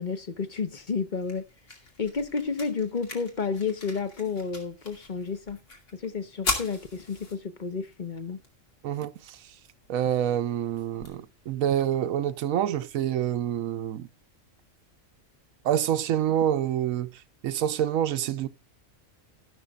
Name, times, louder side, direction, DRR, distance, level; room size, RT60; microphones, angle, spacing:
voice 1, 0.0-1.5 2.0-5.6 5.9-8.4, left 5 dB, 40° left, 1.0 m, -31 dB
sound 1, 0.7-12.7, left 2 dB, 65° left, 2.9 m, -40 dB
voice 2, 8.8-9.4 9.9-14.1 15.6-17.1 17.4-18.5, right 10 dB, 90° right, 1.1 m, -27 dB
13.0 x 12.0 x 2.3 m
omnidirectional pair, 1.4 m